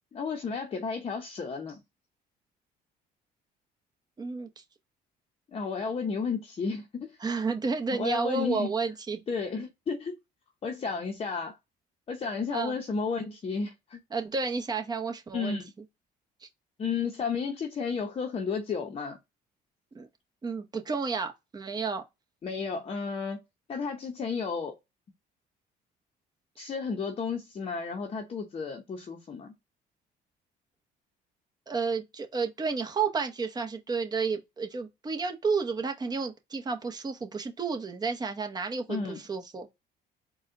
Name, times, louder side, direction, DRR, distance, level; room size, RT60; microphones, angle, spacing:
voice 1, 0.1-1.8 5.5-7.2 7.9-8.7 9.3-10.2 10.6-11.6 12.1-14.0 15.3-15.7 16.8-19.2 22.4-23.4 23.7-24.8 26.6-29.5 38.9-39.2, left 5 dB, 35° left, 0.7 m, -32 dB
voice 2, 4.2-4.6 7.2-9.2 12.5-12.8 14.1-15.6 16.4-16.5 19.9-20.1 20.4-22.0 31.7-39.7, right 4 dB, 25° right, 0.9 m, -31 dB
4.2 x 2.3 x 3.6 m
cardioid pair, 110°, 17 cm